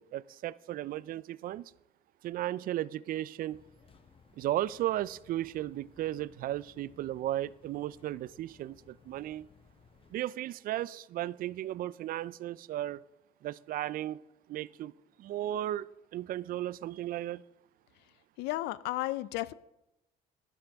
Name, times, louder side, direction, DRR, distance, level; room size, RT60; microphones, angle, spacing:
voice 1, 0.0-1.7 2.2-3.6 4.4-9.5 10.1-13.0 13.4-14.2 14.5-14.9 15.2-17.4, right 13 dB, 55° right, 0.4 m, -35 dB
sound 1, 3.5-10.2, left 5 dB, 30° left, 0.9 m, -61 dB
voice 2, 18.4-19.5, left 17 dB, 90° left, 0.4 m, -33 dB
12.0 x 11.5 x 3.5 m
cardioid pair, 110°, 17 cm